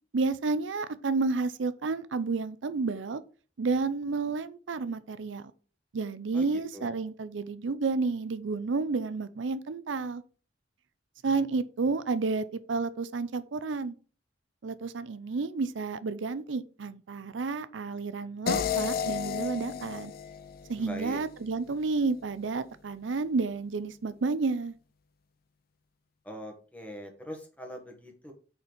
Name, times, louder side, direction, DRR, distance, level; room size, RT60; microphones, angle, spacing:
voice 1, 0.1-3.2 3.6-5.5 5.9-10.2 11.2-13.9 14.6-20.1 20.7-24.8, right 4 dB, 80° right, 0.5 m, -31 dB
voice 2, 6.3-6.9 20.7-21.2 26.2-28.3, equal, 10° left, 1.6 m, -42 dB
sound 1, 18.5-21.5, left 7 dB, 55° left, 0.5 m, -32 dB
6.5 x 4.4 x 5.1 m
head